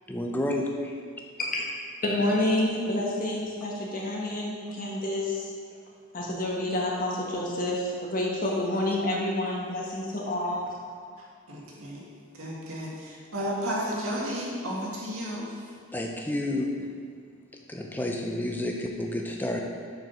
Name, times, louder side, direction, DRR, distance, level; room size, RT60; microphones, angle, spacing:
voice 1, 0.1-1.0 15.9-16.9 17.7-19.6, left 1 dB, 10° left, 1 dB, 0.6 m, -30 dB
voice 2, 2.0-5.5 6.1-10.7, left 1 dB, 40° left, -3 dB, 1.3 m, -28 dB
voice 3, 11.5-12.0 12.4-15.5, equal, 70° right, -4 dB, 1.9 m, -32 dB
7.7 x 5.0 x 5.6 m, 2.1 s
head